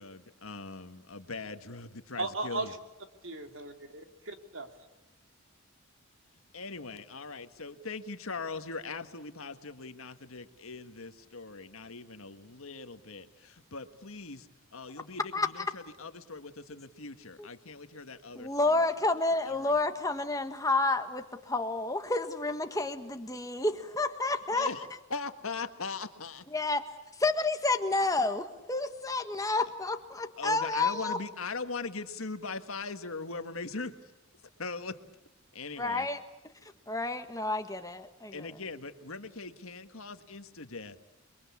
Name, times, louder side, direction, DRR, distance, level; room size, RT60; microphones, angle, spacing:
voice 1, 0.0-2.7 6.5-18.9 19.5-19.7 24.5-26.5 30.4-33.9 34.6-35.0 35.5-36.1 38.3-41.0, left 4 dB, 70° left, 9 dB, 1.7 m, -40 dB
voice 2, 2.2-2.8 3.2-4.7, right 2 dB, 60° right, 5 dB, 2.8 m, -36 dB
voice 3, 18.3-24.7 26.5-26.8 27.2-31.2 35.8-36.2 36.9-38.5, left 2 dB, 15° left, 7 dB, 1.5 m, -30 dB
29.5 x 22.5 x 8.5 m, 0.98 s
head